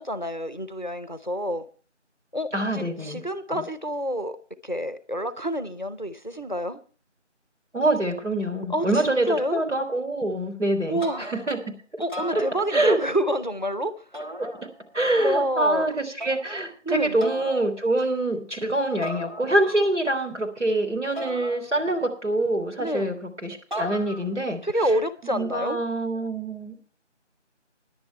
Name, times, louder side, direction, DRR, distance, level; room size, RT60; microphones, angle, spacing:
voice 1, 0.0-1.7 2.3-4.4 4.6-6.8 8.7-9.6 10.9-11.3 12.0-14.0 15.2-15.9 16.8-17.2 19.6-19.7 22.8-23.2 24.6-25.8, equal, 40° left, 0.7 m, -28 dB
voice 2, 2.5-3.2 3.5-3.6 7.7-11.6 11.9-12.0 12.7-13.0 14.4-14.5 14.9-23.2 23.4-24.9 25.2-26.8, right 1 dB, 75° right, 3.5 m, -25 dB
sound 1, 11.0-11.6 12.0-13.1 14.1-15.0 16.2-16.7 17.2-17.7 19.0-19.9 21.2-22.1 23.7-24.5, right 1 dB, 40° right, 2.0 m, -37 dB
14.0 x 10.5 x 4.6 m
figure-of-eight pair, 180°, 36 cm